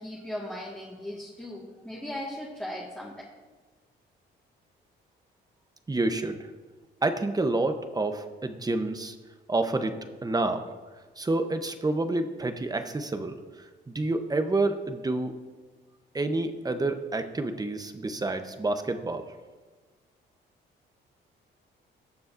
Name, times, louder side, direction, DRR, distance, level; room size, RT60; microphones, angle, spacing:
voice 1, 0.0-3.1, left 1 dB, 5° left, -5 dB, 1.8 m, -37 dB
voice 2, 5.9-6.5 7.0-9.2 9.5-9.9 10.2-10.6 11.2-13.3 13.9-15.3 16.1-19.3, right 2 dB, 20° right, 7 dB, 0.9 m, -28 dB
19.0 x 6.8 x 2.6 m, 1.3 s
cardioid pair, 90°, 20 cm